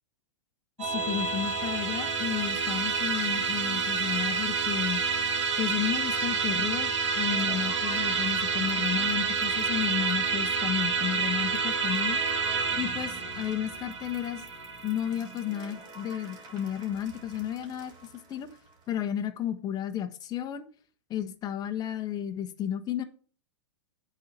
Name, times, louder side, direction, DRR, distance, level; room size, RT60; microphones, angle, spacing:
voice 1, 0.8-5.0 5.6-12.2 12.8-14.4 14.8-17.9 18.3-18.5 18.9-20.7 21.1-23.0, left 10 dB, 25° left, 1.1 m, -32 dB
Musical instrument, 0.8-16.3, right 5 dB, 90° right, 2.4 m, -29 dB
sound 1, 7.1-19.0, right 2 dB, 30° right, 3.4 m, -48 dB
9.1 x 4.3 x 6.7 m
hypercardioid pair, 130°, 15 cm